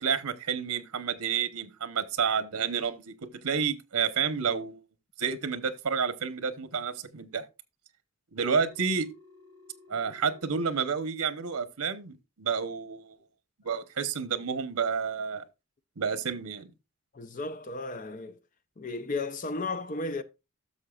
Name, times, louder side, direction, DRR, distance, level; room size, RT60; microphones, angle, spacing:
voice 1, 0.0-3.1 3.4-4.8 5.2-7.4 8.3-9.1 9.9-13.2 13.6-15.4 16.0-16.7, right 6 dB, 90° right, 0.9 m, -30 dB
Telephone, 8.5-10.5, left 3 dB, 40° right, 6.1 m, -55 dB
voice 2, 17.1-18.4 18.8-20.2, left 3 dB, 35° left, 0.6 m, -34 dB
13.0 x 6.5 x 2.4 m
head